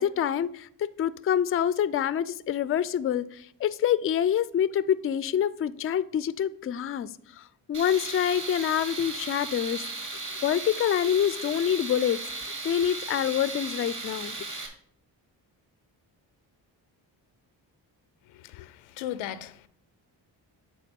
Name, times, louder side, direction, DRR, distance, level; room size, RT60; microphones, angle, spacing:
voice 1, 0.0-7.1 7.4-9.8 10.4-12.2 12.6-14.3, left 9 dB, 30° left, 0.4 m, -26 dB
Tools, 7.7-14.7, right 3 dB, 40° right, 2.1 m, -36 dB
voice 2, 18.3-19.7, left 11 dB, 90° left, 0.6 m, -37 dB
8.4 x 3.7 x 5.2 m
supercardioid pair, 45°, 48 cm